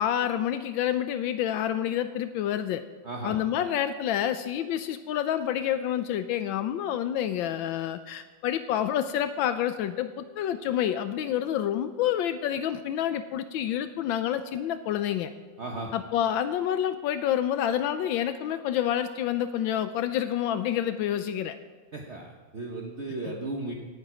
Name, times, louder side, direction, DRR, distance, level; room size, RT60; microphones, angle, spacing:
voice 1, 0.0-2.8 3.2-15.3 15.9-21.6 23.2-23.3, left 10 dB, 80° left, 10 dB, 1.4 m, -28 dB
voice 2, 3.0-3.4 15.6-15.9 21.9-23.7, right 2 dB, 40° right, 1 dB, 1.3 m, -35 dB
17.0 x 9.0 x 5.0 m, 1.4 s
omnidirectional pair, 2.1 m